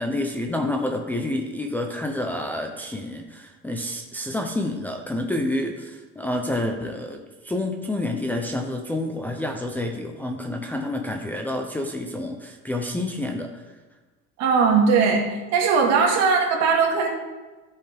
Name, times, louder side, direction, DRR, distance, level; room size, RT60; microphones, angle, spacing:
voice 1, 0.0-13.7, left 1 dB, 5° left, 1 dB, 0.4 m, -28 dB
voice 2, 14.4-15.2 15.5-17.1, right 5 dB, 65° right, 1 dB, 1.9 m, -19 dB
13.5 x 5.5 x 3.4 m, 1.2 s
cardioid pair, 165°, 29 cm